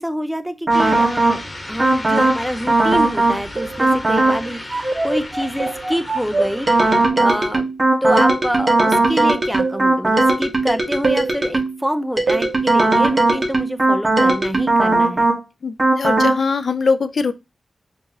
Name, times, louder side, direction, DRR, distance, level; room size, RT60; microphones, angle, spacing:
voice 1, 0.0-7.7 8.0-15.3, equal, ahead, 0.5 m, -26 dB
sound 1, 0.7-7.1, left 1 dB, 30° left, 1.4 m, -34 dB
sound 2, 0.7-1.4 1.8-2.4 2.7-3.4 3.8-4.4 4.7-11.8 12.2-15.4 15.8-16.4, right 2 dB, 35° right, 1.3 m, -18 dB
sound 3, 3.6-3.9 4.3-4.6 5.6-5.9 6.4-6.7 8.1-8.4 9.6-9.9 11.0-11.4 12.3-12.6, right 4 dB, 85° right, 0.4 m, -25 dB
voice 2, 15.6-17.3, left 4 dB, 75° left, 0.3 m, -21 dB
5.2 x 2.7 x 2.9 m
wide cardioid pair, 70°, 0 cm